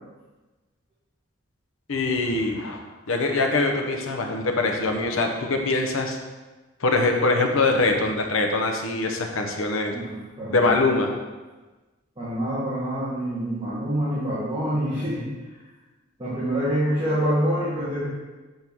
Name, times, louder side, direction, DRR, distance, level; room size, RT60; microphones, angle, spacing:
voice 1, 1.9-2.8 3.1-6.2 6.8-9.9 10.5-11.1, left 3 dB, 85° left, 3 dB, 0.8 m, -23 dB
voice 2, 9.9-10.7 12.2-15.2 16.2-18.1, equal, 25° right, -10 dB, 1.6 m, -26 dB
7.7 x 4.4 x 3.5 m, 1.2 s
head